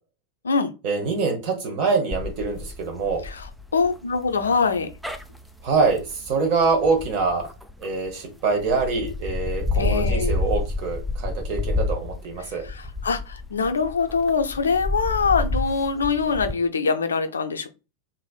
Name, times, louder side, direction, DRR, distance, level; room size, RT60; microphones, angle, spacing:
voice 1, 0.8-3.2 5.6-7.5 7.8-12.6, right 4 dB, 45° right, 4 dB, 0.8 m, -24 dB
sound 1, 2.1-8.1 8.6-16.5, left 2 dB, ahead, 0.3 m, -29 dB
voice 2, 3.2-4.9 9.7-10.3 12.6-17.7, left 5 dB, 70° left, 8 dB, 0.4 m, -24 dB
3.1 x 2.5 x 2.3 m, 0.29 s
figure-of-eight pair, 90°, 0 cm